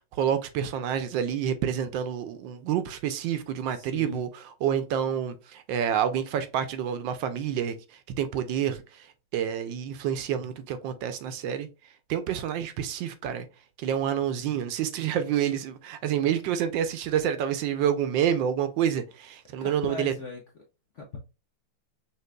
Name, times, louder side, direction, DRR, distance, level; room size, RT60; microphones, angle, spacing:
voice 1, 0.2-7.7 8.2-9.1 9.3-11.7 12.1-13.5 13.8-20.1, right 9 dB, 75° right, 1.2 m, -28 dB
voice 2, 3.7-4.2 19.6-20.4 20.9-21.2, left 3 dB, 65° left, 0.7 m, -38 dB
5.7 x 3.0 x 2.2 m
omnidirectional pair, 2.2 m